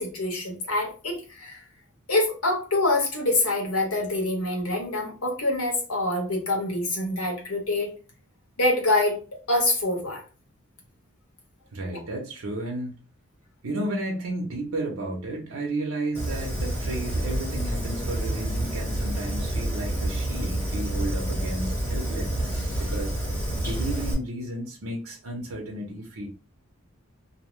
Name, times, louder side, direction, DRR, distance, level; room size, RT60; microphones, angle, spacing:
voice 1, 0.0-1.6 2.1-7.9 8.6-9.2 9.5-10.2, left 2 dB, 85° left, 1 dB, 1.1 m, -25 dB
voice 2, 11.7-12.9 13.6-23.1 23.6-26.3, right 1 dB, 80° right, -1 dB, 0.7 m, -33 dB
Fire, 16.1-24.1, right 1 dB, 10° left, 0.9 m, -28 dB
2.7 x 2.0 x 3.0 m, 0.34 s
head